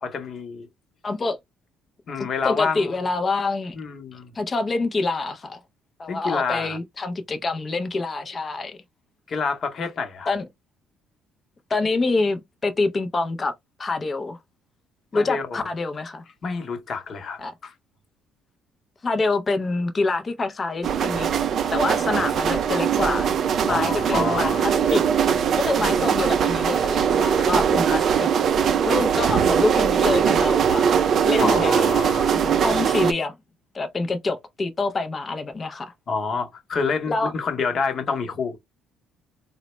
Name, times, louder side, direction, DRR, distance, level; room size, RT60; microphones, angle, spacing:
voice 1, 0.0-0.7 2.1-3.0 3.7-4.4 6.1-6.8 9.3-10.3 15.1-15.6 16.4-17.7 23.7-24.7 31.4-32.4 36.1-38.6, left 5 dB, 40° left, 0.8 m, -28 dB
voice 2, 1.0-1.4 2.2-3.8 4.3-5.6 6.0-8.8 10.3-10.4 11.7-13.5 13.8-14.4 15.1-16.2 17.4-17.5 19.0-21.3 21.7-23.4 23.6-25.0 25.6-28.3 28.6-31.0 31.2-31.9 32.3-33.3 33.7-35.9 37.1-37.3, left 3 dB, 25° left, 0.4 m, -26 dB
sound 1, 20.8-33.1, right 7 dB, 45° right, 0.4 m, -21 dB
3.9 x 2.1 x 3.0 m
cardioid pair, 145°, 0 cm